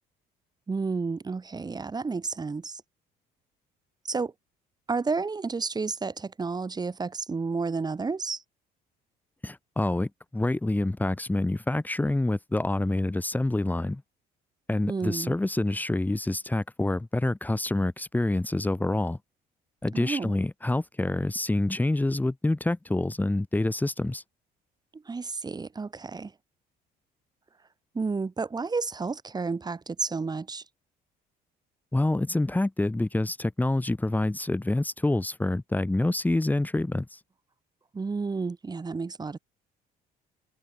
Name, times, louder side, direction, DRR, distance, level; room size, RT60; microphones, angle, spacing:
voice 1, 0.7-2.8 4.1-4.3 4.9-8.4 14.9-15.4 19.9-20.4 24.9-26.3 27.9-30.6 37.9-39.4, right 4 dB, 25° right, 3.7 m, -31 dB
voice 2, 9.4-14.0 14.7-19.2 19.8-24.2 31.9-37.2, left 2 dB, 10° left, 3.1 m, -27 dB
cardioid pair, 110°, 17 cm